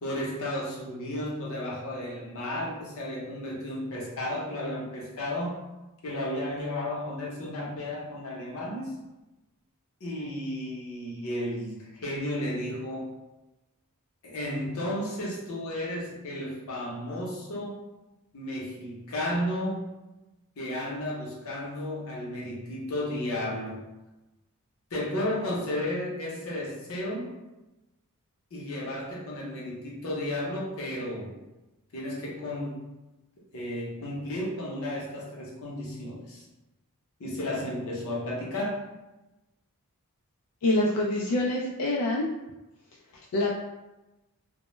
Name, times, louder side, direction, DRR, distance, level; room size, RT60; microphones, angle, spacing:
voice 1, 0.0-5.7 6.0-8.9 10.0-13.2 14.2-17.8 18.3-19.9 20.6-23.8 24.9-27.3 28.5-31.4 31.9-32.8 33.5-36.4 37.2-38.7, left 1 dB, 65° left, -4 dB, 0.7 m, -33 dB
voice 2, 40.6-42.3 43.3-43.5, left 1 dB, 85° left, -3 dB, 0.3 m, -25 dB
2.1 x 2.1 x 3.0 m, 1.0 s
head